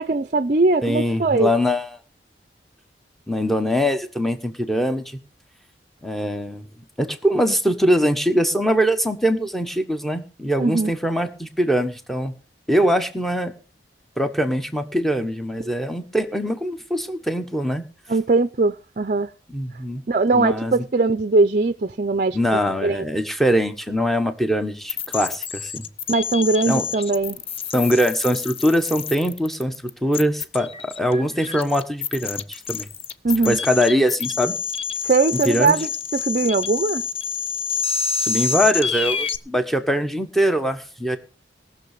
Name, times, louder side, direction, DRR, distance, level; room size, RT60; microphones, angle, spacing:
voice 1, 0.0-1.5 10.6-10.9 18.1-19.3 20.1-23.0 26.1-27.4 33.2-33.6 35.0-37.1, right 3 dB, 45° right, 0.6 m, -20 dB
voice 2, 0.8-1.9 3.3-5.2 6.0-6.7 7.0-12.3 12.7-13.5 14.2-17.8 19.5-20.0 20.3-20.8 22.3-25.9 26.7-26.8 27.7-29.7 30.0-32.9 33.4-34.6 35.3-35.7 38.2-41.2, equal, ahead, 1.2 m, -22 dB
sound 1, 24.9-39.4, left 6 dB, 35° left, 0.7 m, -28 dB
18.5 x 6.6 x 6.7 m
head